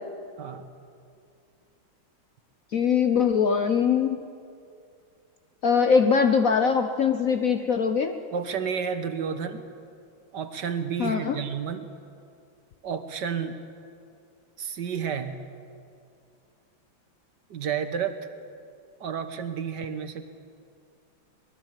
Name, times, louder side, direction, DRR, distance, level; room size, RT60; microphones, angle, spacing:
voice 1, 2.7-4.2 5.6-8.1 11.0-11.4, left 6 dB, 55° left, 7 dB, 1.0 m, -22 dB
voice 2, 8.3-9.6 10.3-11.9 12.8-13.6 14.6-15.3 17.5-18.3 19.0-20.3, right 7 dB, 60° right, 9 dB, 1.6 m, -31 dB
24.0 x 20.5 x 7.5 m, 2.4 s
omnidirectional pair, 2.3 m